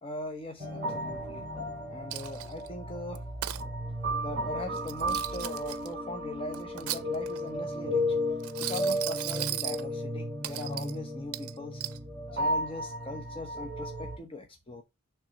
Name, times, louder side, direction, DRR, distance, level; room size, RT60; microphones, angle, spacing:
voice 1, 0.0-1.4 1.9-3.2 4.2-8.2 8.6-11.8 12.3-14.8, left 1 dB, 25° left, 0.8 m, -40 dB
sound 1, 0.6-14.2, equal, 40° right, 3.1 m, -34 dB
Coin (dropping), 2.1-2.7 3.1-3.6 4.8-5.9 6.5-7.5 8.4-9.8 10.4-10.9 11.3-12.0, right 14 dB, 85° right, 0.5 m, -36 dB
6.0 x 3.4 x 5.2 m
head